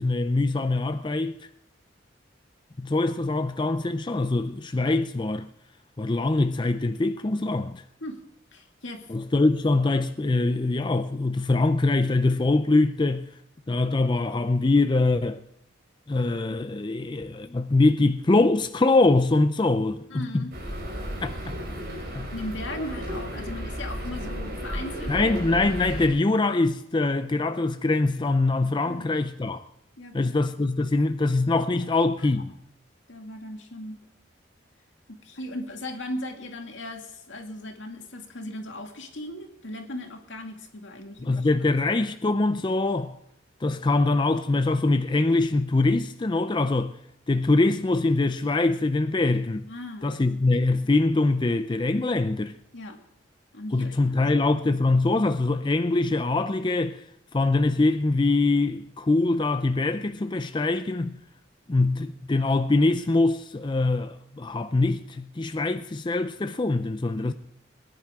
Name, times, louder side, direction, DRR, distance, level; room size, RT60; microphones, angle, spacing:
voice 1, 0.0-1.4 2.8-5.5 6.0-7.8 9.1-13.3 13.7-15.4 16.1-20.5 21.2-21.6 22.1-22.3 25.1-29.6 30.1-32.5 41.2-43.2 43.6-46.9 47.3-49.7 50.0-52.6 53.7-57.0 57.3-61.2 61.7-67.3, left 2 dB, 25° left, 0.4 m, -23 dB
voice 2, 8.5-9.1 20.1-20.5 22.3-25.3 28.8-29.1 30.0-30.3 32.2-32.3 33.1-34.0 35.1-41.5 49.7-50.4 52.7-53.0 53.5-54.4 67.2-67.3, left 1 dB, 80° left, 2.2 m, -38 dB
sound 1, 20.5-26.1, equal, 55° right, 5.3 m, -33 dB
21.5 x 10.5 x 3.6 m
head